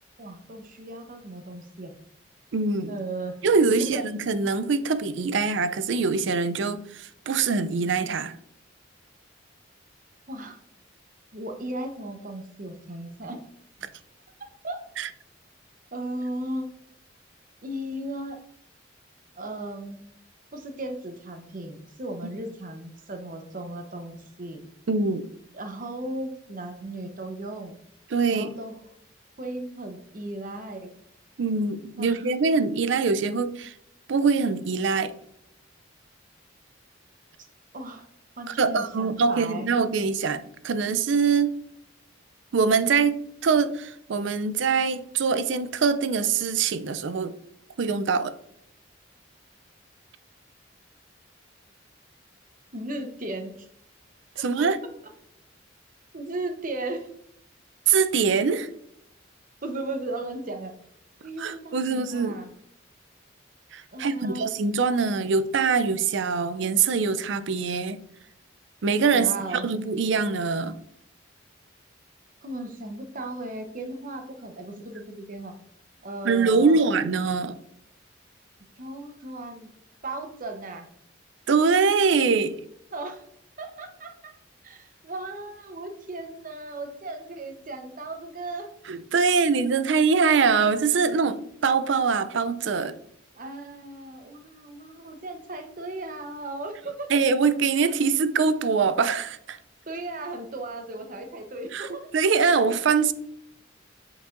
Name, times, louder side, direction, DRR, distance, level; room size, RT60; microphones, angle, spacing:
voice 1, 0.2-1.9 2.9-3.4 3.8-4.0 10.3-10.6 11.3-13.4 14.6-14.8 15.9-16.7 17.6-18.4 19.4-20.0 20.5-24.6 25.5-27.8 28.3-28.7 29.4-30.9 32.0-32.3 37.7-38.1 38.4-39.7 52.7-53.7 54.6-54.7 56.1-57.1 59.6-60.7 61.2-62.5 63.9-64.5 69.1-69.7 72.4-75.5 76.0-76.9 78.8-79.7 80.0-80.9 82.9-83.2 83.6-84.3 84.6-88.7 93.4-97.2 99.9-102.1, right 2 dB, 45° right, 0.8 m, -36 dB
voice 2, 2.5-2.9 3.4-8.3 15.0-15.1 24.9-25.3 28.1-28.5 31.4-33.7 34.1-35.1 38.5-41.5 42.5-47.3 47.8-48.4 54.4-54.8 57.9-58.7 61.4-62.4 63.7-68.0 68.8-69.3 69.6-70.8 76.2-77.6 81.5-82.6 88.9-93.0 97.1-99.6 101.7-101.9 102.1-103.1, right 5 dB, 65° right, 0.4 m, -23 dB
8.1 x 4.7 x 2.5 m
head